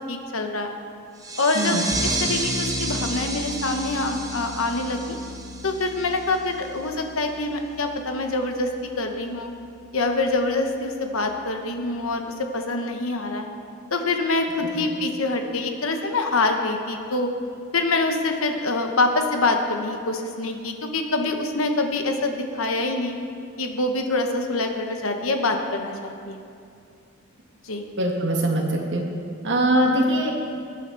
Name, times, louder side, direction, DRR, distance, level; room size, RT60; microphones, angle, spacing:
voice 1, 0.1-0.7 1.4-1.8 2.0-5.2 5.6-8.7 9.0-9.5 9.9-13.5 13.9-17.3 17.7-23.2 23.6-26.4 27.6-27.8, left 2 dB, 70° left, 4 dB, 1.2 m, -25 dB
sound 1, 1.2-6.5, right 2 dB, 15° right, 1.1 m, -31 dB
sound 2, 1.9-11.9, left 1 dB, 40° right, 1.8 m, -37 dB
voice 2, 28.0-29.0 29.4-30.3, right 1 dB, 60° right, 0 dB, 1.9 m, -22 dB
20.0 x 9.2 x 4.1 m, 2.5 s
head